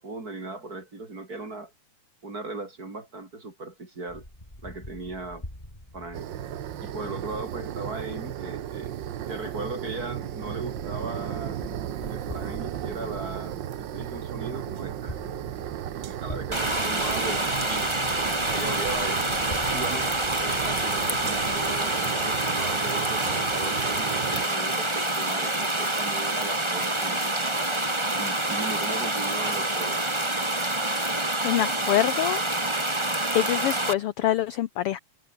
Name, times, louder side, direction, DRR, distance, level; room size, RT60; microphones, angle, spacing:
voice 1, 0.0-1.7 2.2-4.3 4.6-5.4 5.9-6.3 6.8-9.0 9.3-11.6 12.1-15.2 15.8-17.9 18.5-19.3 19.7-20.1 20.4-27.7 28.2-30.0, right 2 dB, 30° right, 4.6 m, -37 dB
sound 1, 4.1-21.8, left 1 dB, 10° left, 7.4 m, -45 dB
sound 2, 6.1-24.5, right 11 dB, 80° right, 1.0 m, -35 dB
sound 3, 16.5-33.9, right 1 dB, 10° right, 2.3 m, -27 dB
voice 2, 31.4-32.4 33.3-35.0, left 13 dB, 75° left, 1.3 m, -25 dB
omnidirectional pair, 3.4 m